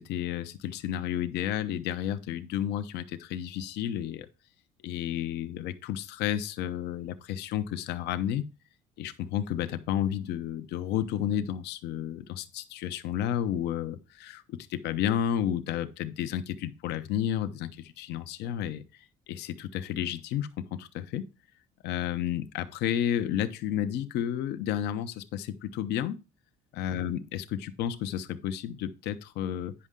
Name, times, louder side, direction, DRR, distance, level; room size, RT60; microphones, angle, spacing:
voice 1, 0.0-4.3 4.8-8.4 9.0-21.3 21.8-26.2 26.7-29.7, left 10 dB, 80° left, 0.7 m, -31 dB
9.7 x 5.4 x 3.7 m
cardioid pair, 110°, 17 cm